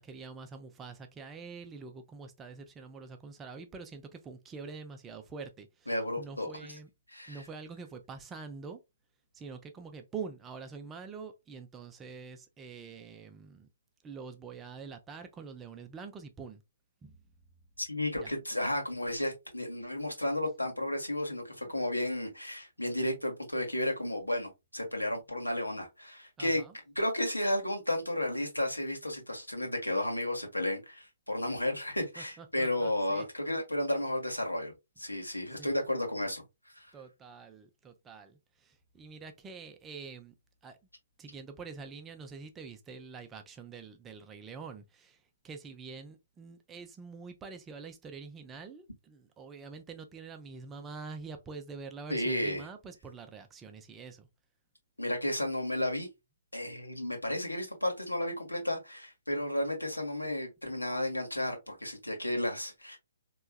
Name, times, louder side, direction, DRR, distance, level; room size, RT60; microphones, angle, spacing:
voice 1, 0.0-6.9 7.3-8.8 9.3-13.7 14.0-16.6 17.0-17.2 18.2-18.3 26.4-26.7 32.2-33.3 35.2-35.3 35.6-35.7 36.9-40.3 40.6-40.8 41.2-54.3, right 5 dB, 15° right, 0.5 m, -46 dB
voice 2, 5.9-6.5 7.1-7.4 17.8-26.6 26.9-36.4 36.7-36.9 52.1-52.7 55.0-56.1 56.5-63.0, left 1 dB, 85° left, 1.4 m, -33 dB
4.5 x 3.0 x 2.3 m
figure-of-eight pair, 130°, 0 cm